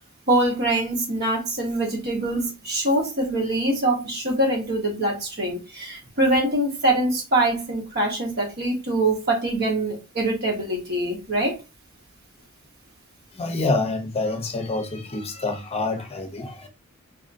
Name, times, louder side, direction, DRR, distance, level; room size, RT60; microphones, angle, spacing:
voice 1, 0.3-11.6, right 1 dB, 50° right, 1.4 m, -24 dB
voice 2, 13.3-16.7, left 2 dB, 30° left, 0.7 m, -27 dB
4.1 x 2.8 x 2.6 m
head